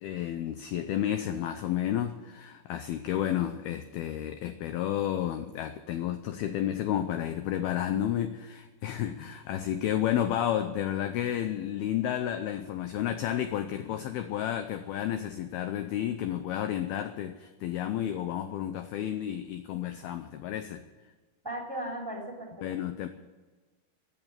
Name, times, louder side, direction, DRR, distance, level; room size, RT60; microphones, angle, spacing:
voice 1, 0.0-20.8 22.6-23.1, left 11 dB, 90° left, 9 dB, 2.1 m, -31 dB
voice 2, 21.4-22.8, right 1 dB, 5° right, -1 dB, 2.6 m, -37 dB
15.5 x 9.2 x 8.8 m, 1.3 s
omnidirectional pair, 5.4 m